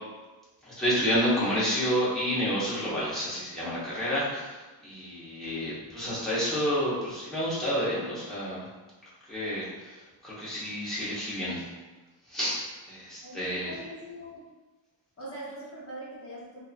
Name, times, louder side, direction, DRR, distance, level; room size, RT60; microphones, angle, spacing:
voice 1, 0.6-4.5 4.8-8.6 9.3-10.0 10.2-11.6 12.3-12.6 12.9-13.7, equal, ahead, -11 dB, 1.0 m, -29 dB
voice 2, 13.2-14.4 15.2-16.6, right 1 dB, 35° left, -7 dB, 0.9 m, -42 dB
2.8 x 2.6 x 2.4 m, 1.2 s
wide cardioid pair, 145°, 43 cm